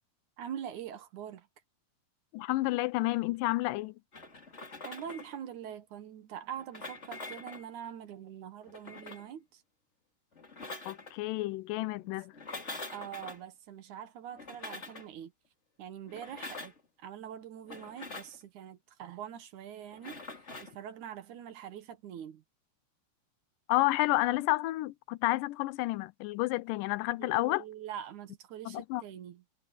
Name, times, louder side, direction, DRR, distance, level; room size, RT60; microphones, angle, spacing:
voice 1, 0.4-1.5 4.8-9.6 12.9-15.3 15.8-16.7 17.0-22.4 27.2-29.4, right 9 dB, 65° right, 2.7 m, -44 dB
voice 2, 2.3-3.9 10.9-12.3 23.7-27.6 28.7-29.0, left 19 dB, 90° left, 2.3 m, -30 dB
sound 1, 4.1-5.4 6.5-7.7 8.6-9.3 10.3-11.1 12.3-13.4 14.3-15.1 16.1-16.8 17.6-18.4 19.9-20.8, left 3 dB, 20° left, 2.6 m, -44 dB
omnidirectional pair, 3.8 m